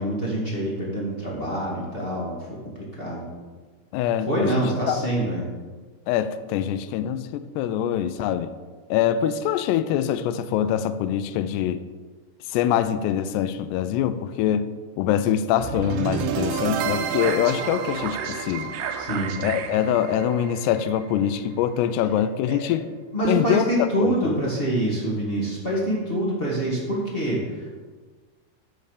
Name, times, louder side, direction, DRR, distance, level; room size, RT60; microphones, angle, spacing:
voice 1, 0.0-2.4 3.0-3.3 4.2-5.4 19.0-19.3 22.5-22.7 23.1-27.8, right 1 dB, 40° left, -5 dB, 0.8 m, -26 dB
voice 2, 3.9-5.1 6.1-8.5 8.9-11.8 12.5-14.7 15.0-18.7 19.4-22.8 23.2-23.6 24.0-24.4, left 10 dB, 85° left, 11 dB, 2.7 m, -24 dB
sound 1, 15.6-21.7, right 7 dB, 85° right, 2.7 m, -29 dB
12.5 x 5.5 x 6.6 m, 1.4 s
omnidirectional pair, 4.7 m